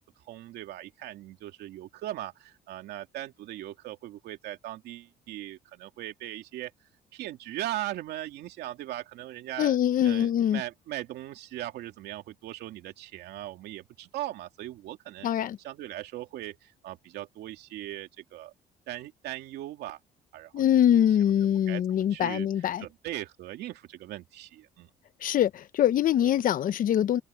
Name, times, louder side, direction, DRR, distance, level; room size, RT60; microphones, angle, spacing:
voice 1, 0.3-6.7 7.1-9.8 10.0-18.5 18.9-20.0 20.3-21.0 21.5-22.5 22.8-24.9, right 14 dB, 75° right, 2.7 m, -39 dB
voice 2, 9.6-10.6 15.2-15.6 20.5-22.8 25.2-27.2, left 10 dB, 55° left, 0.9 m, -23 dB
cardioid pair, 110°, 17 cm